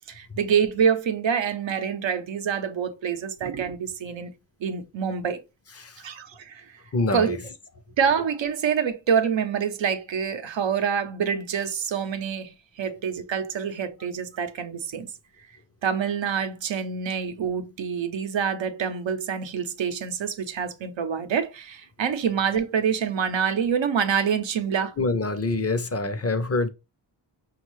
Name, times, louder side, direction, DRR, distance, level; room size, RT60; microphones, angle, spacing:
voice 1, 0.1-4.3 4.6-5.4 6.0-6.8 7.1-7.4 8.0-15.1 15.8-25.0, right 7 dB, 90° right, 0.6 m, -26 dB
voice 2, 5.8-6.1 6.9-7.4 25.0-26.7, left 3 dB, 35° left, 0.5 m, -26 dB
5.2 x 2.3 x 3.0 m
wide cardioid pair, 70°, 44 cm